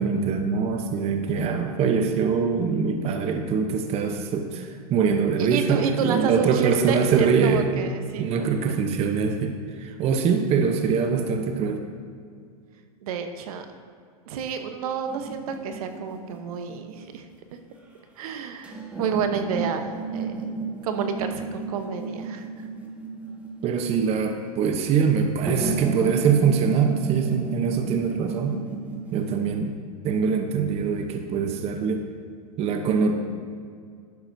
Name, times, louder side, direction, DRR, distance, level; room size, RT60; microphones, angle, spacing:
voice 1, 0.0-7.7 8.2-11.8 23.6-28.6 29.1-29.7 30.0-32.0 32.6-33.2, right 6 dB, 30° right, 5 dB, 0.8 m, -23 dB
voice 2, 5.4-8.8 13.0-13.7 14.3-17.3 18.2-20.5 20.8-22.7, right 6 dB, 65° right, 6 dB, 1.0 m, -30 dB
sound 1, 15.1-17.1 18.6-24.1 25.5-29.7, right 4 dB, 5° right, 1.4 m, -32 dB
12.0 x 10.5 x 2.7 m, 2.2 s
hypercardioid pair, 125°, 20 cm